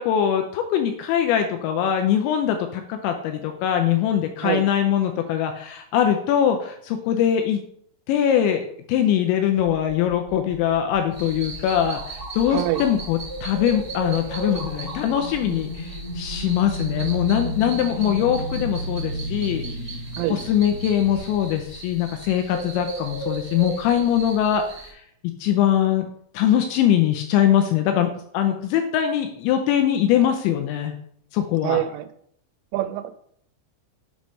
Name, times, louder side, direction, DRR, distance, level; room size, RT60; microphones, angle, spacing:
voice 1, 0.0-7.6 8.1-19.6 20.3-24.6 25.2-26.1 26.3-31.0 31.3-31.8, left 10 dB, 85° left, 5 dB, 2.7 m, -22 dB
sound 1, 9.6-21.2, right 2 dB, 55° right, 1.8 m, -36 dB
sound 2, 11.1-24.9, right 1 dB, 15° right, 0.9 m, -34 dB
voice 2, 12.5-12.8 20.2-20.4 31.6-32.1 32.7-33.1, right 14 dB, 90° right, 10 dB, 3.1 m, -25 dB
7.6 x 3.1 x 5.2 m, 0.68 s
omnidirectional pair, 5.6 m